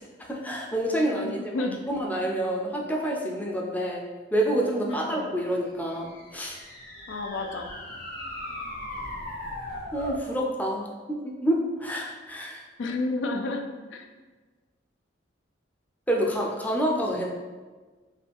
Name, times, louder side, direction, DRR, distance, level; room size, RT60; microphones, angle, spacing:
voice 1, 0.2-4.0 4.3-6.6 9.9-12.6 16.1-17.3, right 1 dB, 10° left, -1 dB, 0.5 m, -28 dB
voice 2, 1.1-1.8 4.9-5.3 7.1-7.7 12.8-13.6 13.9-14.1, left 2 dB, 75° left, 3 dB, 0.5 m, -31 dB
sound 1, 5.9-10.3, left 1 dB, 50° left, 0.9 m, -38 dB
5.4 x 2.3 x 3.5 m, 1.3 s
head